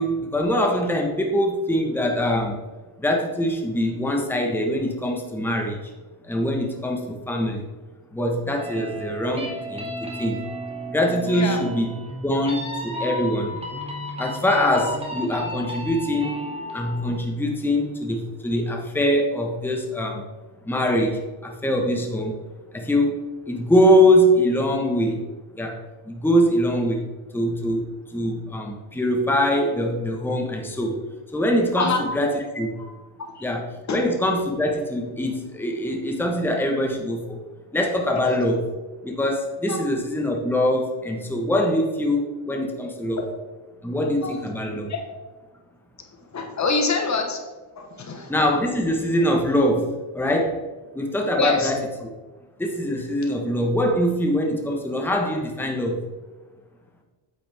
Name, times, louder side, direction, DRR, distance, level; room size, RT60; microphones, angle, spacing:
voice 1, 0.0-2.6 3.0-5.9 6.2-7.6 8.1-10.4 10.9-11.9 12.2-13.6 14.2-16.4 16.7-20.2 20.6-22.4 22.7-23.2 23.5-25.2 25.5-25.8 26.1-27.1 27.3-31.0 31.3-33.0 33.4-37.4 37.7-38.7 39.0-43.3 43.8-44.9 48.3-50.6 50.9-52.1 52.6-56.0, equal, 5° left, 1 dB, 1.3 m, -23 dB
sound 1, 8.6-17.1, equal, 10° right, 2.2 m, -33 dB
voice 2, 46.3-47.4 47.8-48.3 51.4-51.7, left 4 dB, 35° left, 4 dB, 1.3 m, -24 dB
8.8 x 7.8 x 3.5 m, 1.3 s
cardioid pair, 105°, 49 cm